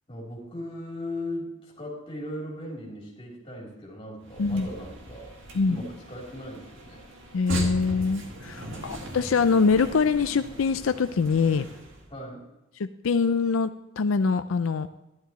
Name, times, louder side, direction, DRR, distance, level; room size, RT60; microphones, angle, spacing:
voice 1, 0.1-5.3 5.7-7.0 8.6-9.0 12.1-12.4, left 1 dB, 25° left, -3 dB, 3.4 m, -38 dB
sound 1, 4.2-12.1, equal, 70° right, 2.1 m, -38 dB
voice 2, 7.3-11.7 12.8-13.7 14.0-14.9, left 5 dB, 90° left, 11 dB, 0.5 m, -24 dB
12.5 x 12.0 x 3.1 m, 0.97 s
head